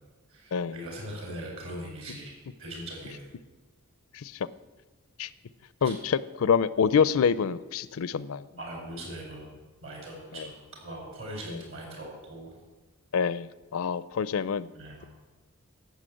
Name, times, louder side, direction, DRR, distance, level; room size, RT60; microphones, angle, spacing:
voice 1, 0.3-3.2 5.8-5.9 8.6-9.5 9.8-12.5 14.7-15.1, right 1 dB, 65° right, 0 dB, 4.9 m, -40 dB
voice 2, 5.8-8.4 13.1-14.7, left 6 dB, 70° left, 17 dB, 0.5 m, -26 dB
11.5 x 8.1 x 7.7 m, 1.2 s
head